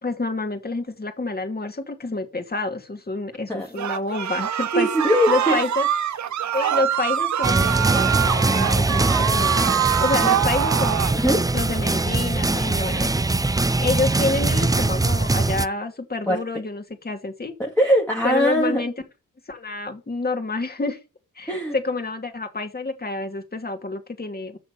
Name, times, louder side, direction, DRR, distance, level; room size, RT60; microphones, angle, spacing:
voice 1, 0.0-4.9 5.3-5.9 6.5-9.6 10.0-11.1 11.5-13.2 13.8-17.5 18.2-18.9 19.5-21.0 21.4-24.6, left 3 dB, 30° left, 2.5 m, -28 dB
voice 2, 3.5-3.8 4.7-5.6 11.1-11.5 16.3-16.4 17.6-18.8 21.5-21.7, equal, 5° left, 2.1 m, -21 dB
sound 1, 3.8-11.2, right 10 dB, 60° right, 0.8 m, -24 dB
sound 2, 7.4-15.7, right 2 dB, 10° right, 0.5 m, -22 dB
6.7 x 6.4 x 6.7 m
cardioid pair, 60°, 32 cm